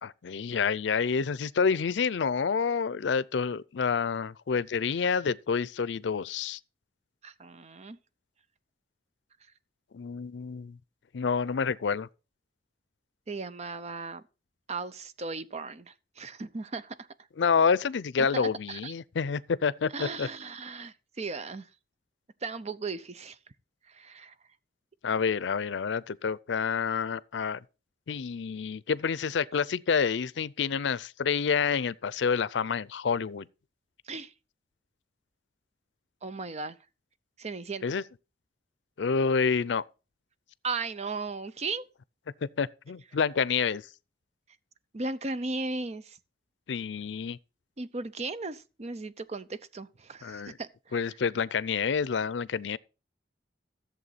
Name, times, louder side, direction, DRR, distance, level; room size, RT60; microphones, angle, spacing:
voice 1, 0.0-6.6 9.9-10.8 11.1-12.1 17.4-20.3 25.0-27.6 28.1-33.5 37.8-38.0 39.0-39.8 42.6-43.8 46.7-47.4 50.2-50.6 50.9-52.8, left 6 dB, 85° left, 0.5 m, -28 dB
voice 2, 7.2-8.0 13.3-14.2 14.7-17.1 18.2-18.9 19.9-21.7 22.4-23.4 23.9-24.3 34.1-34.3 36.2-36.8 37.4-38.0 40.6-41.9 44.9-46.2 47.8-51.2, right 3 dB, 40° right, 0.7 m, -36 dB
14.0 x 7.3 x 4.1 m
head